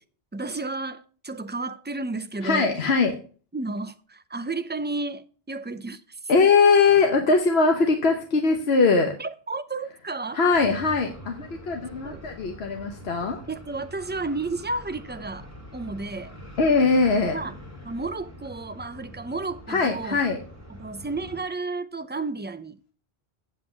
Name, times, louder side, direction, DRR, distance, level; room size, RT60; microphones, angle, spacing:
voice 1, 0.3-2.7 3.5-6.3 9.2-10.4 12.0-12.2 13.5-16.4 17.3-17.5 17.8-20.2 20.8-22.9, right 3 dB, 15° right, 0.4 m, -32 dB
voice 2, 2.4-3.2 6.3-9.2 10.3-13.4 16.6-17.4 19.7-20.4, left 4 dB, 80° left, 1.3 m, -21 dB
sound 1, 10.5-21.4, equal, 15° left, 2.4 m, -44 dB
8.0 x 7.6 x 5.8 m
omnidirectional pair, 1.0 m